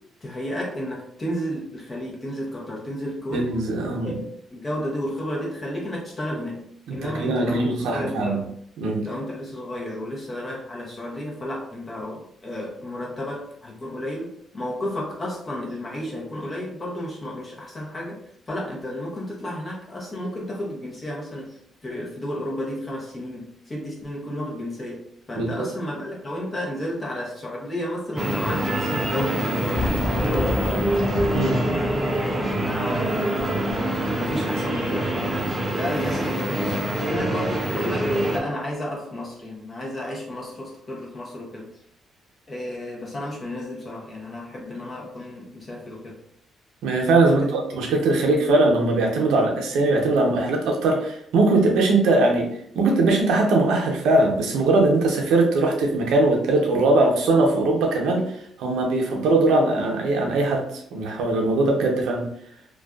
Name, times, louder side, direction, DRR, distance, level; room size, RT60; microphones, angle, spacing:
voice 1, 0.2-3.5 4.0-6.6 6.9-8.4 9.0-18.2 18.5-25.0 25.3-30.8 31.7-33.9 34.2-35.4 35.7-41.7 42.5-46.2 47.2-47.7, left 1 dB, 30° left, -3 dB, 0.8 m, -32 dB
voice 2, 3.3-4.1 6.9-8.4 8.8-9.1 25.4-25.6 31.3-31.7 46.8-52.5 52.7-58.3 58.6-62.3, right 2 dB, 85° right, 1 dB, 0.6 m, -21 dB
sound 1, 28.2-38.4, right 1 dB, 25° right, 0.7 m, -25 dB
Fireworks, 29.7-34.8, left 3 dB, 65° left, 0.4 m, -32 dB
2.5 x 2.2 x 2.3 m, 0.68 s
cardioid pair, 90°, 0 cm